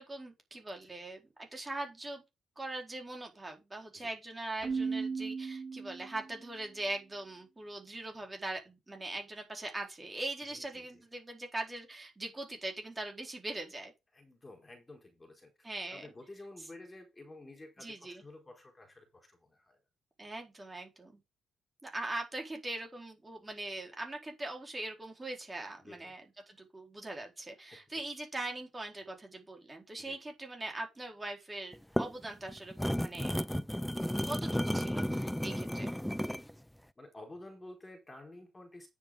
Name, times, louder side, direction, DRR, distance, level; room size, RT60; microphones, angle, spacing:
voice 1, 0.0-2.2 2.6-13.9 15.6-16.1 17.8-18.2 20.2-21.2 21.8-26.2 26.5-33.4 34.2-35.9, right 2 dB, 20° right, 4.3 m, -41 dB
Keyboard (musical), 4.6-6.4, right 5 dB, 40° right, 1.0 m, -36 dB
voice 2, 10.5-11.0 14.1-19.8 25.8-26.1 27.7-27.8 30.0-30.2 35.6-35.8 36.4-36.5 37.0-38.9, left 2 dB, 20° left, 4.4 m, -52 dB
sound 1, 31.7-36.5, equal, 5° left, 0.4 m, -33 dB
10.0 x 7.0 x 3.8 m
cardioid pair, 90°, 0 cm